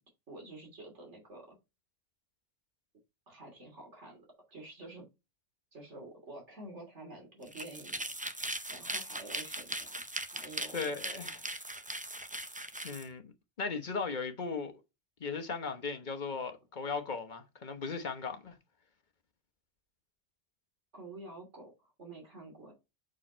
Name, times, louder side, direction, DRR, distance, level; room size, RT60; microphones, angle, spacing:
voice 1, 0.3-1.6 3.3-5.0 5.7-8.0 8.4-10.9 20.9-21.7 22.0-22.7, right 2 dB, 85° right, 3.1 m, -49 dB
sound 1, 7.4-13.1, right 1 dB, 15° right, 0.3 m, -39 dB
voice 2, 10.7-11.4 12.8-13.3 13.6-14.7 15.2-18.6, left 4 dB, 45° left, 1.1 m, -37 dB
6.2 x 4.6 x 4.4 m
omnidirectional pair, 1.2 m